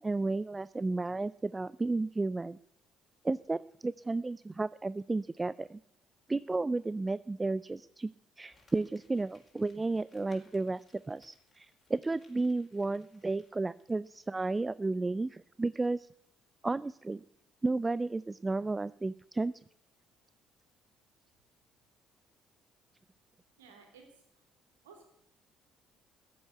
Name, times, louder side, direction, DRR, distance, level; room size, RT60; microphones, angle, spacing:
voice 1, 0.0-2.6 3.2-5.8 6.3-8.1 8.4-10.8 11.1-16.1 16.6-17.2 17.6-19.5, right 3 dB, 20° right, 18 dB, 0.4 m, -33 dB
Crumpling crinkling, 8.5-14.2 14.5-14.6, left 3 dB, 35° left, 4.7 m, -67 dB
voice 2, 23.6-24.4 24.8-25.1, right 5 dB, 90° right, 4 dB, 3.1 m, -56 dB
15.0 x 8.0 x 8.0 m, 0.76 s
hypercardioid pair, 55°, 0 cm